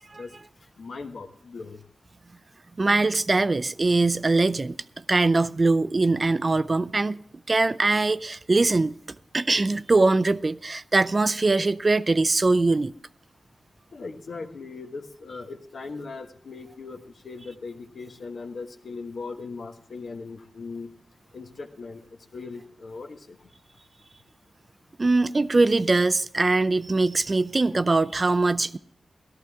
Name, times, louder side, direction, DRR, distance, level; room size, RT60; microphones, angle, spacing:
voice 1, 0.8-1.8 13.9-20.9 21.3-22.0 22.3-23.4, left 4 dB, 70° left, 1.3 m, -39 dB
voice 2, 2.8-4.8 5.1-8.9 9.3-12.9 25.0-28.8, right 3 dB, 35° right, 0.4 m, -22 dB
14.5 x 13.0 x 3.5 m
wide cardioid pair, 85°, 0 cm